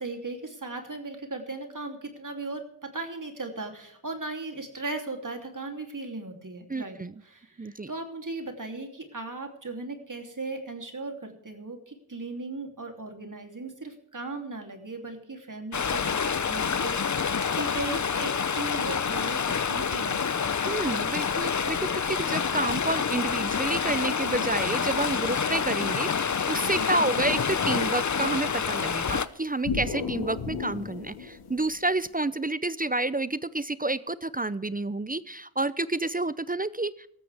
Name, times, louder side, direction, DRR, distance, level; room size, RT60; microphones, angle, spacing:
voice 1, 0.0-20.5 26.8-27.1, right 3 dB, 40° right, 4 dB, 3.2 m, -37 dB
voice 2, 6.7-7.1 7.6-7.9 20.6-37.1, right 2 dB, 20° right, 17 dB, 0.6 m, -29 dB
Stream, 15.7-29.3, left 6 dB, 35° left, 0.8 m, -27 dB
sound 1, 27.1-28.6 29.6-32.1, left 5 dB, 85° left, 2.1 m, -35 dB
18.0 x 13.5 x 3.5 m, 0.75 s
cardioid pair, 40°, 49 cm